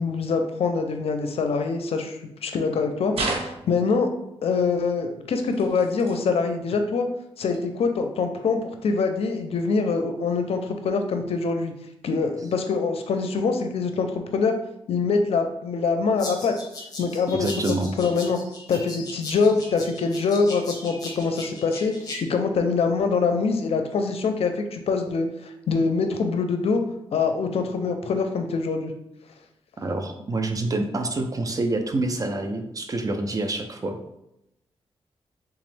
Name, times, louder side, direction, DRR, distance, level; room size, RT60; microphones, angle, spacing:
voice 1, 0.0-4.1 4.4-7.1 7.4-11.7 12.0-14.1 14.3-14.5 14.9-16.5 17.0-17.5 18.0-18.4 18.7-21.9 22.2-25.3 25.7-26.8 27.1-28.9, left 4 dB, 70° left, 6 dB, 0.5 m, -24 dB
sound 1, 3.1-4.0 5.5-6.2 7.5-7.7 8.5-8.6, right 3 dB, 70° right, 0.7 m, -32 dB
sound 2, 16.2-22.2, left 2 dB, 40° left, 0.9 m, -38 dB
voice 2, 17.4-17.9 29.8-34.0, right 2 dB, 35° right, 6 dB, 0.5 m, -27 dB
3.5 x 3.0 x 3.2 m, 0.85 s
cardioid pair, 100°, 10 cm